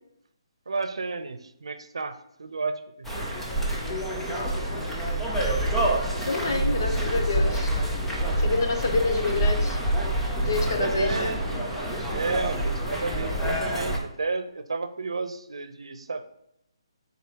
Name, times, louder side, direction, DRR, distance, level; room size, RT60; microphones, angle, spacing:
voice 1, 0.7-3.3 10.8-11.5 12.1-16.2, right 3 dB, 80° right, 10 dB, 0.7 m, -32 dB
sound 1, 3.0-14.0, right 1 dB, 5° left, 0.4 m, -27 dB
voice 2, 6.3-7.7 8.4-9.8 10.3-11.3, left 3 dB, 40° left, 4 dB, 0.9 m, -27 dB
9.5 x 4.2 x 2.9 m, 0.79 s
hypercardioid pair, 180°, 3 cm